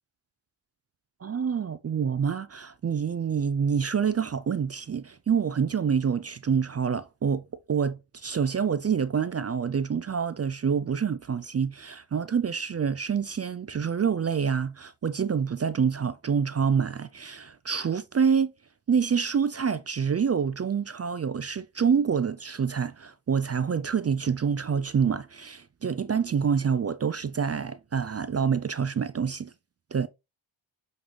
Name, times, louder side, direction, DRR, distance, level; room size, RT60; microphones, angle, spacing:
voice 1, 1.2-7.4 7.7-18.5 18.9-29.5 29.9-30.1, right 6 dB, 35° right, 0.4 m, -27 dB
7.6 x 3.9 x 3.2 m
cardioid pair, 60°, 48 cm